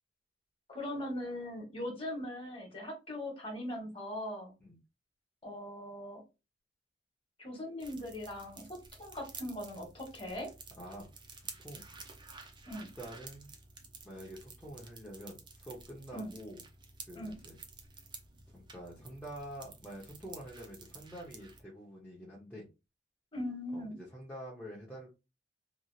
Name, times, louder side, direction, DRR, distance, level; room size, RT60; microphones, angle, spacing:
voice 1, 0.7-4.5 5.4-6.2 7.4-8.6 9.0-10.5 12.7-12.9 16.1-16.3 17.1-17.4 23.3-24.0, left 1 dB, 30° left, 0 dB, 1.2 m, -40 dB
sound 1, 7.8-21.6, right 4 dB, 25° right, 0.5 m, -52 dB
voice 2, 10.8-11.1 11.6-11.8 13.0-13.5 14.0-16.6 17.1-17.6 18.5-22.6 23.7-25.1, equal, 10° left, -6 dB, 0.7 m, -47 dB
2.9 x 2.4 x 2.6 m, 0.27 s
head